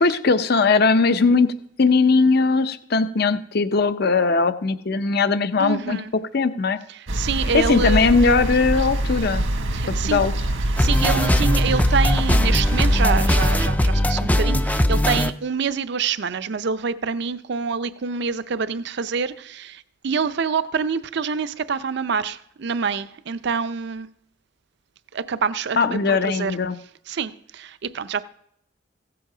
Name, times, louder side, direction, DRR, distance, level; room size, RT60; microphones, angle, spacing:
voice 1, 0.0-1.5 1.8-6.0 6.3-6.8 7.5-9.5 10.0-10.3 25.8-26.7, left 4 dB, 55° left, 0.6 m, -19 dB
voice 2, 5.6-6.1 7.0-8.1 9.7-10.2 10.8-24.1 25.1-26.6 27.1-28.2, right 5 dB, 60° right, 0.5 m, -26 dB
sound 1, 7.1-13.7, right 1 dB, 85° right, 1.4 m, -25 dB
sound 2, 10.8-15.3, left 1 dB, 10° left, 0.4 m, -20 dB
16.0 x 7.8 x 4.9 m
head